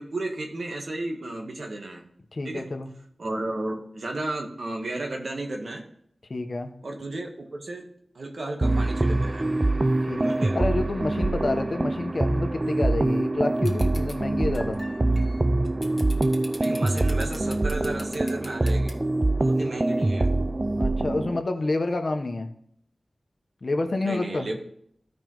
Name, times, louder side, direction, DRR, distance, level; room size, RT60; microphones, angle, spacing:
voice 1, 0.0-2.0 2.4-2.6 3.2-5.8 6.8-7.9 8.1-9.5 10.2-10.6 16.6-19.0 19.4-20.3 24.0-24.6, right 2 dB, 70° right, 1 dB, 1.3 m, -33 dB
voice 2, 2.3-2.9 6.3-6.7 10.0-14.8 20.8-22.5 23.6-24.5, left 2 dB, 60° left, 5 dB, 1.1 m, -28 dB
sound 1, 8.6-21.4, right 2 dB, 35° right, 0.3 m, -24 dB
sound 2, 13.6-14.1 14.5-18.9, left 2 dB, 30° left, 1.4 m, -41 dB
14.5 x 5.3 x 3.1 m, 0.68 s
wide cardioid pair, 70°, 0 cm